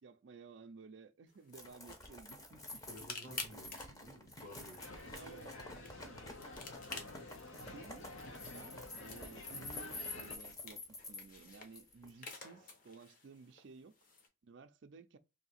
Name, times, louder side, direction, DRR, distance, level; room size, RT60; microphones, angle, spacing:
voice 1, 0.0-2.8 5.1-6.3 6.9-7.3 7.6-8.1 8.5-13.9 14.4-15.2, right 4 dB, 60° right, 0.4 m, -56 dB
sound 1, 1.3-14.3, left 4 dB, 40° left, 0.9 m, -52 dB
sound 2, 1.5-12.1, left 2 dB, 15° left, 0.7 m, -49 dB
voice 2, 2.8-5.4 6.9-7.3, equal, 70° left, 1.9 m, -55 dB
sound 3, 4.8-10.4, left 2 dB, 85° left, 1.1 m, -50 dB
3.2 x 2.7 x 4.1 m
head